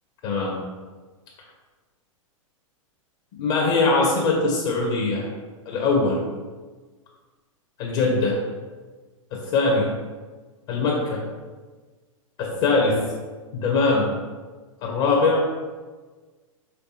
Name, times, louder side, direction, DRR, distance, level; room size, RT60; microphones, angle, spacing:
voice 1, 0.2-0.6 3.4-5.3 5.7-6.2 7.8-8.4 9.3-9.9 10.7-11.2 12.4-13.0 13.5-14.1 14.8-15.5, left 3 dB, 45° left, -1 dB, 0.7 m, -21 dB
4.5 x 3.2 x 2.7 m, 1.4 s
figure-of-eight pair, 105°, 18 cm